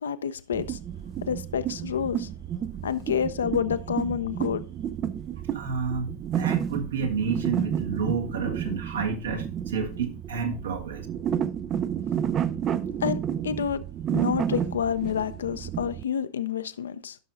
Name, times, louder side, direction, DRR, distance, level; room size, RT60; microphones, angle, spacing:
voice 1, 0.0-0.8 1.3-2.3 2.8-4.6 13.0-13.8 14.1-17.2, left 8 dB, 65° left, 0.5 m, -28 dB
sound 1, 0.5-16.0, right 9 dB, 30° right, 0.3 m, -31 dB
voice 2, 5.5-11.1, right 5 dB, 65° right, 1.4 m, -30 dB
15.0 x 6.3 x 2.5 m
figure-of-eight pair, 90°, 0 cm